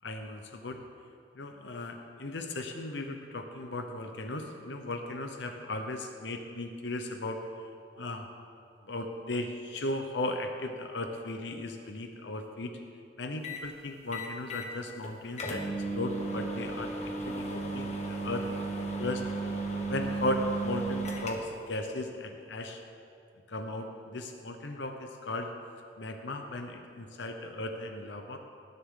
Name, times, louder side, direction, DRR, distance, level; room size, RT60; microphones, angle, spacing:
voice 1, 0.0-0.8 1.3-7.7 8.0-8.3 8.9-12.8 13.2-18.4 19.0-19.3 19.9-22.8 23.5-25.5 26.0-28.4, left 2 dB, 80° left, 5 dB, 0.9 m, -36 dB
sound 1, 13.4-13.7 14.1-14.7 15.0-15.1 15.4-21.7, right 2 dB, 40° left, 1.3 m, -34 dB
19.0 x 10.5 x 3.8 m, 2.5 s
head